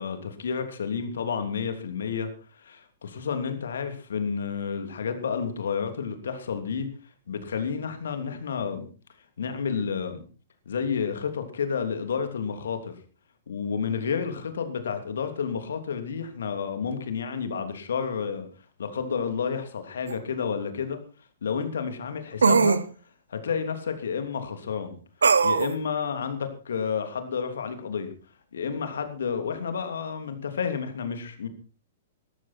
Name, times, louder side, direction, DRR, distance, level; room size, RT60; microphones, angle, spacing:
voice 1, 0.0-2.3 2.6-6.9 7.3-8.9 9.4-10.2 10.7-13.0 13.5-18.5 18.8-21.0 21.4-22.8 23.3-24.9 25.4-28.1 28.5-31.5, left 6 dB, 65° left, 8 dB, 3.0 m, -30 dB
sound 1, 20.1-20.2 22.4-22.8 25.2-25.7, right 5 dB, 70° right, 1.0 m, -19 dB
18.5 x 14.0 x 4.4 m, 0.38 s
figure-of-eight pair, 110°, 0 cm